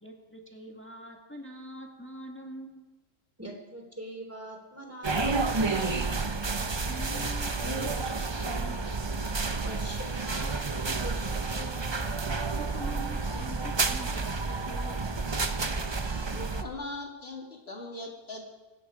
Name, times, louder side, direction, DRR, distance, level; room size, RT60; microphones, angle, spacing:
voice 1, 0.0-2.9 6.6-8.9 12.6-15.0, equal, 10° left, 1 dB, 1.8 m, -44 dB
voice 2, 3.4-6.1 9.6-11.8, right 1 dB, 10° right, 0 dB, 3.2 m, -43 dB
sound 1, 5.0-16.6, right 3 dB, 30° right, 0.5 m, -30 dB
voice 3, 16.2-18.4, left 2 dB, 40° left, 0 dB, 2.7 m, -40 dB
25.5 x 9.9 x 5.0 m, 1.2 s
omnidirectional pair, 1.6 m